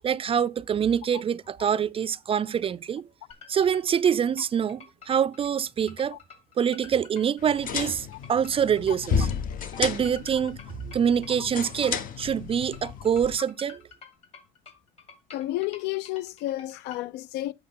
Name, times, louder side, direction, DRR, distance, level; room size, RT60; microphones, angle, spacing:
voice 1, 0.0-3.1 3.5-6.2 6.6-9.3 9.8-10.6 10.9-13.8, right 8 dB, 35° right, 0.3 m, -25 dB
sound 1, 3.3-17.0, left 5 dB, 40° left, 2.6 m, -49 dB
sound 2, 7.4-13.4, left 6 dB, 55° left, 1.1 m, -32 dB
voice 2, 15.3-17.5, left 16 dB, 90° left, 0.4 m, -31 dB
8.4 x 6.0 x 3.7 m
cardioid pair, 110°, 17 cm